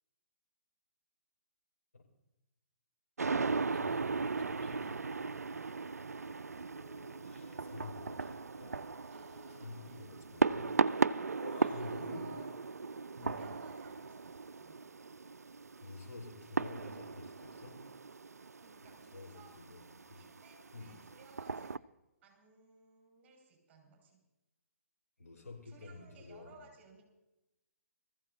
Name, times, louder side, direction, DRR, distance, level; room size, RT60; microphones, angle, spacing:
sound 1, 3.2-21.8, right 4 dB, 80° right, 0.4 m, -37 dB
voice 1, 3.7-5.3 7.2-8.9 9.5-10.7 11.4-12.3 13.1-13.6 15.8-17.8 18.8-20.3 20.7-21.0 25.2-26.6, left 3 dB, 80° left, -1 dB, 4.9 m, -49 dB
sound 2, 4.3-13.3, left 6 dB, 40° left, 2.4 m, -63 dB
voice 2, 9.1-10.1 11.2-12.5 13.3-14.8 18.6-19.6 20.1-21.8 22.2-24.2 25.6-27.0, right 3 dB, 20° right, 0 dB, 5.8 m, -60 dB
24.0 x 15.0 x 2.8 m, 0.96 s
figure-of-eight pair, 130°, 8 cm